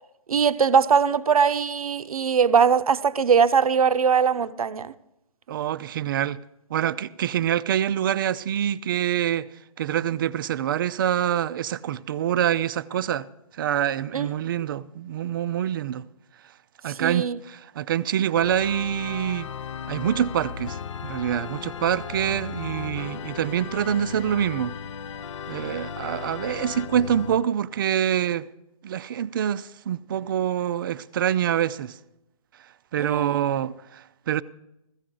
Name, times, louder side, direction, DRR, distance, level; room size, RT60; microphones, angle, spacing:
voice 1, 0.3-4.9 14.1-14.3 17.0-17.4 33.0-33.4, right 6 dB, 70° right, 0.7 m, -21 dB
voice 2, 5.5-6.4 6.7-9.5 9.8-13.3 13.6-16.0 16.8-19.5 19.9-24.7 25.5-28.5 28.8-32.0 32.9-34.4, right 10 dB, 35° right, 0.4 m, -26 dB
Organ, 18.4-27.5, left 7 dB, 55° left, 0.5 m, -36 dB
15.0 x 15.0 x 3.8 m
figure-of-eight pair, 140°, 19 cm